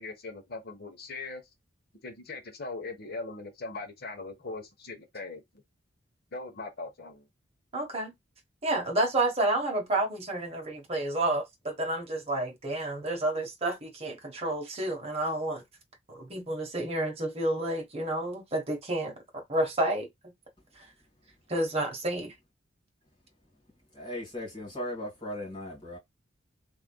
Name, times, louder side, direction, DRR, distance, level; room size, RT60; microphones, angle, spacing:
voice 1, 0.0-1.4 2.0-5.6 6.3-7.3, left 3 dB, 55° left, 1.0 m, -40 dB
voice 2, 7.7-8.1 8.6-15.6 16.1-20.3 20.8-20.9 21.5-22.3, right 1 dB, 30° right, 1.2 m, -30 dB
voice 3, 23.9-26.0, left 1 dB, 25° left, 2.6 m, -37 dB
3.6 x 3.5 x 2.2 m
head